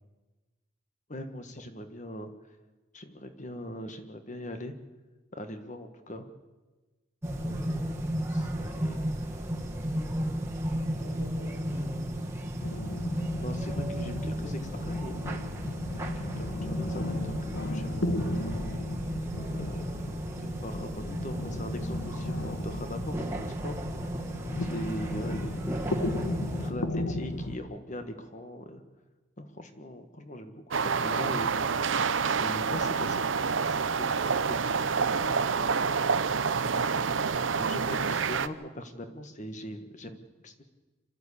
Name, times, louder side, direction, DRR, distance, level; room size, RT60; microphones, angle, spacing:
voice 1, 1.1-2.3 2.9-4.7 5.3-6.3 7.4-7.9 8.3-9.1 13.4-15.2 15.9-18.4 19.3-23.8 24.6-25.8 26.6-28.8 29.4-31.8 32.4-35.7 36.6-40.6, equal, 35° left, 8 dB, 1.6 m, -41 dB
sound 1, 7.2-26.7, equal, 15° right, 1.7 m, -34 dB
voice 2, 8.5-9.8 10.9-12.3, equal, 55° left, -4 dB, 5.9 m, -47 dB
sound 2, 12.6-27.6, left 1 dB, 90° left, 1.6 m, -35 dB
sound 3, 30.7-38.5, right 5 dB, 70° right, 0.7 m, -27 dB
26.5 x 12.5 x 8.5 m, 1.2 s
head